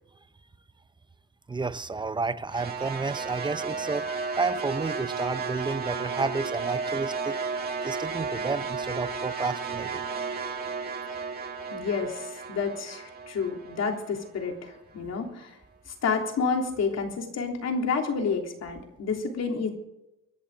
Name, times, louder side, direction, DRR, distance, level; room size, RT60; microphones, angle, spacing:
voice 1, 1.5-4.1 4.4-7.4 7.8-10.0, right 3 dB, 15° right, 0.6 m, -31 dB
sound 1, 2.5-14.8, right 5 dB, 30° right, 2.0 m, -33 dB
voice 2, 11.7-15.5 15.9-19.7, left 5 dB, 55° left, 3.4 m, -29 dB
24.5 x 11.5 x 3.8 m
cardioid pair, 145°, 30 cm